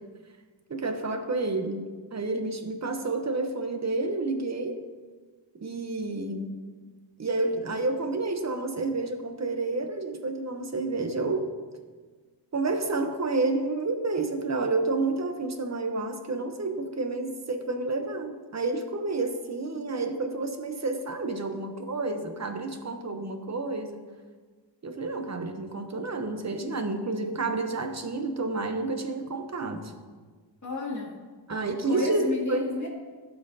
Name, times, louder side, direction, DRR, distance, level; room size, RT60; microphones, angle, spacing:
voice 1, 0.7-4.8 5.6-6.5 7.2-11.5 12.5-24.0 24.8-29.9 31.5-32.7, right 3 dB, 35° right, 6 dB, 0.8 m, -30 dB
voice 2, 30.6-31.1 31.9-32.9, left 3 dB, 40° left, -4 dB, 2.2 m, -31 dB
16.0 x 5.6 x 2.7 m, 1.4 s
wide cardioid pair, 130°, 45 cm